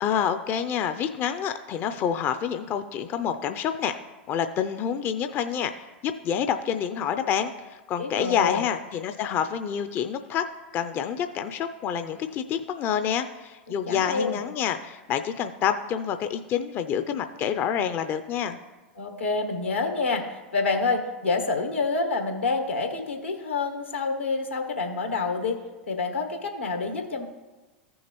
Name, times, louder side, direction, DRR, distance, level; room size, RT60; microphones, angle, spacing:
voice 1, 0.0-4.0 4.3-5.7 6.0-10.4 10.7-18.6, left 8 dB, 35° left, 8 dB, 0.5 m, -27 dB
voice 2, 8.0-8.6 13.9-14.4 19.0-20.2 20.5-25.6 25.9-27.3, left 3 dB, 90° left, 3 dB, 1.4 m, -27 dB
14.5 x 6.3 x 3.0 m, 1.2 s
figure-of-eight pair, 90°, 6 cm